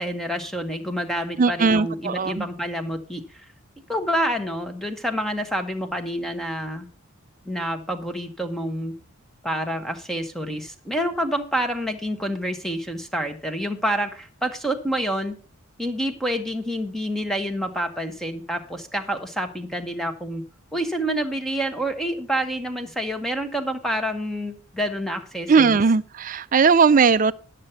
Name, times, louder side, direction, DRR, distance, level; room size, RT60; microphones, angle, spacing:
voice 1, 0.0-3.4 3.9-6.9 7.4-8.9 9.4-15.4 15.8-20.4 20.7-25.8, equal, ahead, 0.9 m, -28 dB
voice 2, 1.4-2.5 25.5-27.3, right 5 dB, 35° right, 0.4 m, -18 dB
11.5 x 6.7 x 5.6 m
head